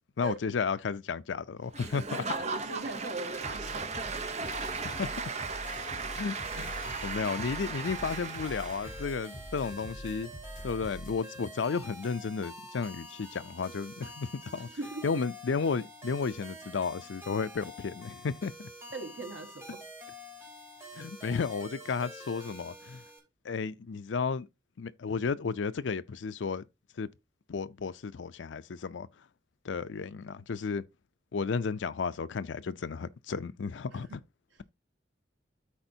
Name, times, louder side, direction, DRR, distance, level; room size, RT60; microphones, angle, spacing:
voice 1, 0.2-2.3 4.5-4.6 4.8-5.1 6.2-10.3 10.6-14.7 15.0-18.7 20.9-23.0 23.4-24.5 24.8-26.6 27.0-27.1 27.5-29.1 29.6-30.8 31.3-34.1, left 5 dB, 85° left, 0.5 m, -33 dB
Applause / Crowd, 1.7-9.1, right 4 dB, 35° right, 0.8 m, -37 dB
voice 2, 2.3-3.9 14.7-15.0 18.9-19.8 33.9-34.2, right 2 dB, 85° right, 1.8 m, -40 dB
sound 1, 3.4-11.2, equal, 50° left, 4.1 m, -45 dB
sound 2, 4.1-23.2, equal, 15° right, 3.3 m, -47 dB
13.0 x 4.4 x 2.7 m
head